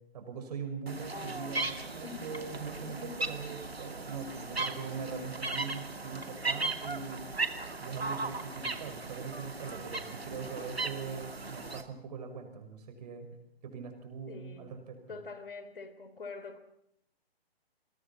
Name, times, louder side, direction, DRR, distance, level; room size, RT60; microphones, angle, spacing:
voice 1, 0.1-7.3 7.8-13.3 13.6-15.0, right 5 dB, 40° right, 6 dB, 6.0 m, -41 dB
sound 1, 0.9-11.8, right 3 dB, 75° right, 2.6 m, -37 dB
voice 2, 2.0-2.4 2.8-3.3 14.3-14.8 15.1-16.6, left 4 dB, 60° left, 11 dB, 3.6 m, -45 dB
28.5 x 22.5 x 4.4 m, 0.76 s
figure-of-eight pair, 130°, 31 cm